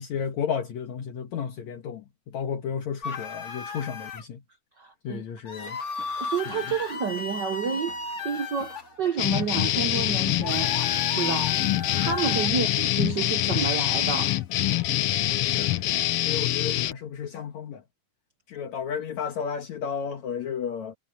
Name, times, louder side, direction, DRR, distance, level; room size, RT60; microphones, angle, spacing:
voice 1, 0.0-4.4 5.0-5.8 6.5-6.6 15.4-17.8 18.5-21.0, left 7 dB, 65° left, 2.6 m, -33 dB
sound 1, 3.0-4.2 5.5-8.8 10.4-12.5, left 3 dB, 50° left, 0.8 m, -35 dB
voice 2, 4.8-5.2 5.6-5.7 6.2-7.9 8.2-10.7 11.1-11.6 11.9-14.4, right 6 dB, 70° right, 1.0 m, -30 dB
sound 2, 5.6-15.2, left 2 dB, 25° left, 3.8 m, -50 dB
sound 3, 9.2-16.9, left 14 dB, 90° left, 1.2 m, -25 dB
omnidirectional pair, 3.6 m